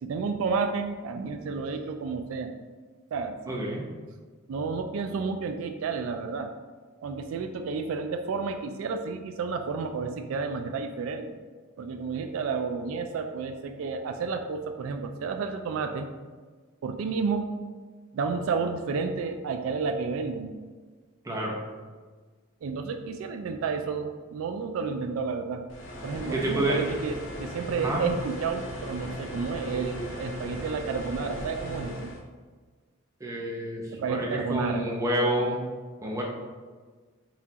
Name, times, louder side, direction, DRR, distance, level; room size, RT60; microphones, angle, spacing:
voice 1, 0.0-2.5 3.1-3.4 4.5-6.5 7.0-11.3 11.8-16.1 16.8-17.5 18.1-20.5 22.6-25.6 26.0-32.1 34.0-34.8, right 5 dB, 85° right, 6 dB, 0.3 m, -31 dB
voice 2, 3.5-3.8 21.2-21.5 26.2-26.8 27.8-28.0 33.2-35.6 36.0-36.2, right 1 dB, 15° right, -3 dB, 0.7 m, -28 dB
sound 1, 25.7-32.2, equal, 65° left, 0.6 m, -38 dB
5.6 x 2.4 x 2.8 m, 1.4 s
head